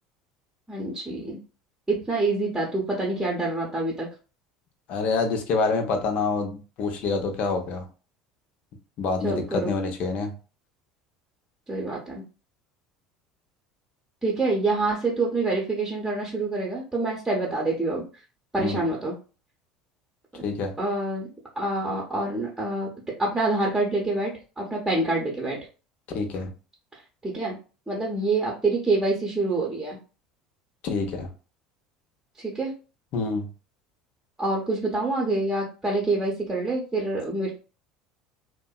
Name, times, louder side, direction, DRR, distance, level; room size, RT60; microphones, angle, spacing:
voice 1, 0.7-1.4 1.9-4.1 9.2-9.7 11.7-12.2 14.2-18.0 18.5-19.1 20.3-20.4 20.8-21.3 21.6-22.9 23.2-25.6 26.9-27.6 27.9-30.0 32.4-32.7 34.4-37.5, right 2 dB, 10° right, -3 dB, 0.8 m, -26 dB
voice 2, 4.9-7.9 9.0-10.4 18.6-18.8 20.4-20.7 26.1-26.5 30.8-31.3 33.1-33.5, left 4 dB, 55° left, 4 dB, 0.6 m, -27 dB
2.6 x 2.1 x 2.3 m, 0.35 s
hypercardioid pair, 75°, 3 cm